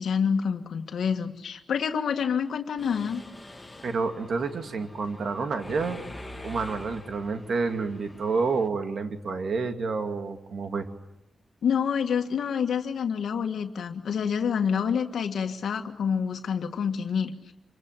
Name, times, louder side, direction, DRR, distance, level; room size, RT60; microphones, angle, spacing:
voice 1, 0.0-3.2 11.6-17.5, left 7 dB, 80° left, 4 dB, 1.8 m, -27 dB
Mechanisms, 2.8-8.7, left 1 dB, 10° left, 1.7 m, -45 dB
voice 2, 3.8-6.0 6.4-10.9, right 4 dB, 55° right, 7 dB, 2.4 m, -29 dB
27.5 x 24.0 x 9.1 m, 0.87 s
wide cardioid pair, 180°, 0 cm